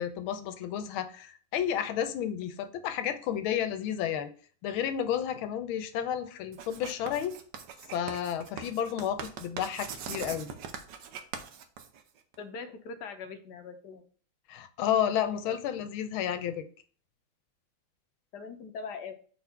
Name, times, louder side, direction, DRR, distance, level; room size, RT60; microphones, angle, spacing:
voice 1, 0.0-4.3 4.6-7.3 7.9-10.5 14.5-16.6, left 9 dB, 85° left, 10 dB, 1.6 m, -31 dB
Writing, 6.5-12.4, right 7 dB, 70° right, 1.4 m, -41 dB
voice 2, 12.4-14.0 15.3-15.6 18.3-19.1, left 5 dB, 65° left, 7 dB, 1.3 m, -41 dB
4.6 x 4.2 x 5.7 m, 0.43 s
omnidirectional pair, 2.2 m